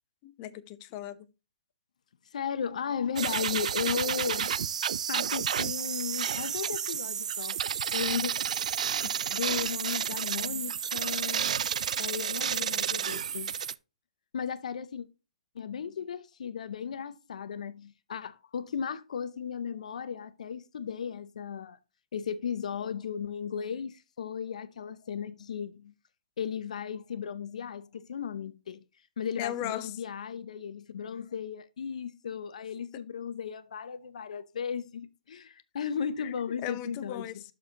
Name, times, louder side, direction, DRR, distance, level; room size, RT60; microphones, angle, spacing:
voice 1, 0.2-1.2 29.4-29.9 36.2-36.3 36.6-37.4, left 12 dB, 30° left, 0.7 m, -37 dB
voice 2, 2.3-4.6 5.1-7.6 7.9-8.3 9.0-11.4 12.0-13.6 14.3-15.1 15.5-21.8 22.1-25.9 26.4-28.8 29.2-37.4, left 7 dB, 65° left, 0.7 m, -35 dB
sound 1, 3.2-13.7, right 8 dB, 65° right, 0.4 m, -31 dB
12.5 x 4.4 x 2.9 m
hypercardioid pair, 150°, 4 cm